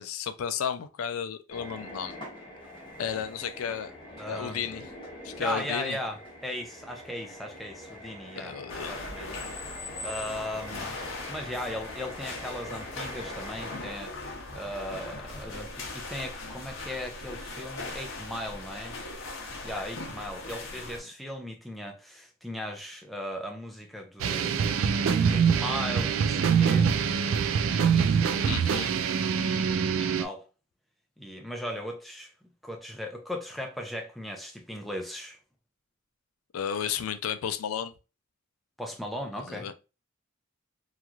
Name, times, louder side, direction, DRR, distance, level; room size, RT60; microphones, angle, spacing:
voice 1, 0.0-2.1 3.0-3.9 4.3-4.9 5.2-6.0 8.4-9.0 28.5-28.9 36.5-37.9 39.4-39.7, left 8 dB, 90° left, 0.4 m, -33 dB
sound 1, 1.5-13.9, equal, 25° left, 0.9 m, -44 dB
voice 2, 4.2-4.7 5.4-8.6 8.9-9.3 10.0-11.0 11.3-19.0 19.6-24.8 25.3-26.9 29.3-30.5 31.2-32.3 32.6-35.4 38.8-39.7, equal, ahead, 0.4 m, -37 dB
sound 2, 8.7-21.0, left 2 dB, 70° left, 0.8 m, -39 dB
sound 3, 24.2-30.2, right 6 dB, 70° right, 0.3 m, -24 dB
3.0 x 2.4 x 2.3 m
head